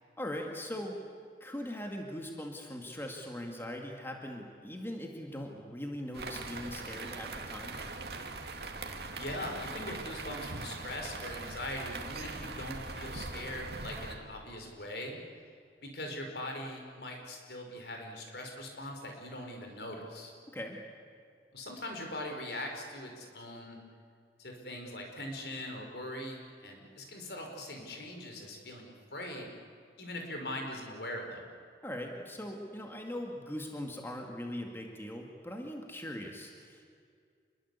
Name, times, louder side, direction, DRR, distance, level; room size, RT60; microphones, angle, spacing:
voice 1, 0.2-1.0 1.4-7.8 20.5-20.8 31.8-36.9, left 1 dB, 15° left, 2 dB, 2.2 m, -40 dB
sound 1, 6.1-14.1, right 3 dB, 60° right, 2.3 m, -41 dB
voice 2, 9.1-15.2 15.8-20.3 21.5-23.8 24.4-29.5 30.0-31.4, left 1 dB, 70° left, 3 dB, 4.9 m, -41 dB
27.5 x 22.0 x 8.4 m, 2.2 s
head